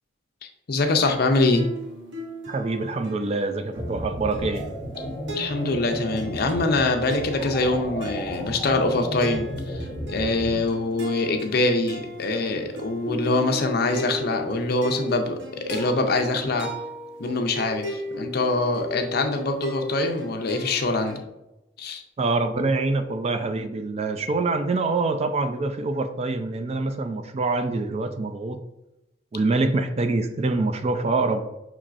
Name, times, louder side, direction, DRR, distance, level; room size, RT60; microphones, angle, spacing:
voice 1, 0.7-1.7 5.3-16.7 17.2-21.2 21.8-22.0, left 2 dB, 55° left, 5 dB, 0.6 m, -24 dB
sound 1, 1.5-21.2, equal, 75° right, 0.8 m, -37 dB
voice 2, 2.5-4.7 22.2-28.6 29.3-31.4, right 3 dB, 35° right, 8 dB, 0.3 m, -25 dB
sound 2, 3.8-10.6, equal, ahead, 1.3 m, -34 dB
5.9 x 3.1 x 2.5 m, 0.92 s
head